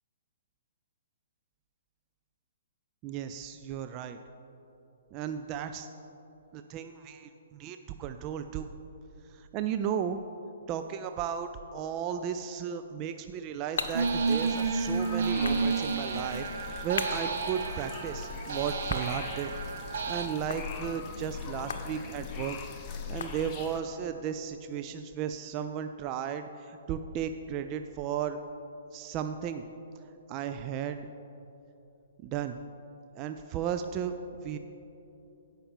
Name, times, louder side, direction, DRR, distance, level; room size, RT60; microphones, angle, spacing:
voice 1, 3.0-4.2 5.1-5.9 6.5-8.7 9.3-10.2 10.7-19.5 20.1-22.6 22.9-28.4 28.9-29.6 30.3-31.1 32.2-32.6 33.1-34.2 34.4-34.6, right 8 dB, 30° right, 8 dB, 0.3 m, -35 dB
sound 1, 13.0-23.9, left 4 dB, 65° left, 0.9 m, -43 dB
sound 2, 13.8-23.8, left 6 dB, 25° left, 1.0 m, -41 dB
sound 3, 13.9-20.3, right 4 dB, 60° right, 0.8 m, -31 dB
16.5 x 5.7 x 3.6 m, 3.0 s
hypercardioid pair, 125°, 0 cm